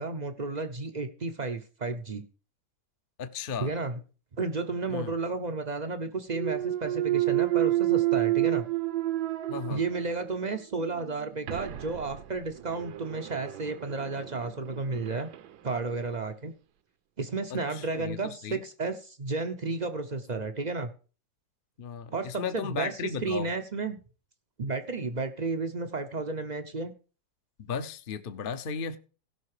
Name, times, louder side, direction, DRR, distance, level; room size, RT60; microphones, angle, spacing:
voice 1, 0.0-2.2 3.6-4.0 4.4-8.7 9.7-15.3 15.6-16.5 17.2-20.9 22.1-24.0 24.6-26.9, right 3 dB, 50° right, 0.5 m, -32 dB
voice 2, 3.2-3.7 4.9-5.1 9.5-9.8 17.5-18.6 21.8-23.5 27.6-29.0, left 6 dB, 50° left, 0.6 m, -35 dB
Thump thud, 6.3-10.3 10.8-15.5, right 16 dB, 65° right, 1.2 m, -30 dB
16.5 x 5.7 x 4.9 m
omnidirectional pair, 2.0 m